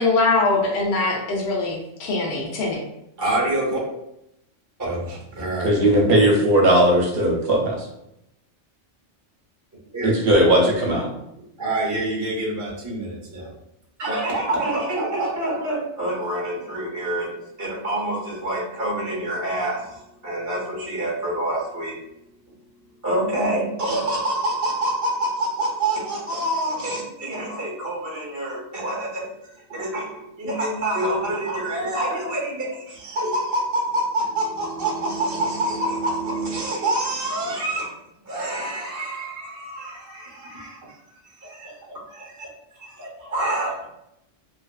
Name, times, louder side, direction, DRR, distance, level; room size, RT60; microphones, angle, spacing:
voice 1, 0.0-2.8, left 3 dB, 60° left, -2 dB, 0.7 m, -22 dB
voice 2, 3.2-3.8 4.8-5.7 9.9-10.3 11.6-13.5 14.0-17.3 17.6-22.0 23.0-29.3 29.7-37.9 38.2-41.0 41.4-42.5 42.8-43.9, right 1 dB, 25° right, -3 dB, 0.4 m, -27 dB
voice 3, 5.6-7.8 10.0-11.1, right 1 dB, 60° right, -1 dB, 0.7 m, -17 dB
2.4 x 2.4 x 2.2 m, 0.82 s
omnidirectional pair, 1.3 m